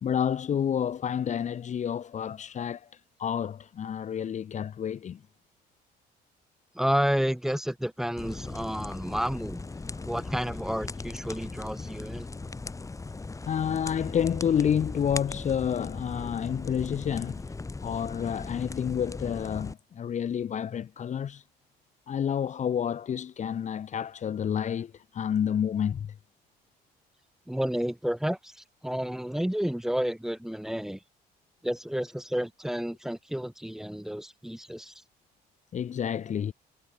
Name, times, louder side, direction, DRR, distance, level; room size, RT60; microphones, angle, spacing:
voice 1, 0.0-2.9 3.2-5.2 13.5-17.4 17.8-21.4 22.1-26.1 35.7-36.5, left 8 dB, 45° left, 2.0 m, -29 dB
voice 2, 6.8-9.6 10.1-12.2 27.5-28.5 28.8-31.0 31.6-34.9, equal, ahead, 4.0 m, -30 dB
sound 1, 8.2-19.7, left 3 dB, 20° left, 6.4 m, -38 dB
cardioid pair, 110°, 17 cm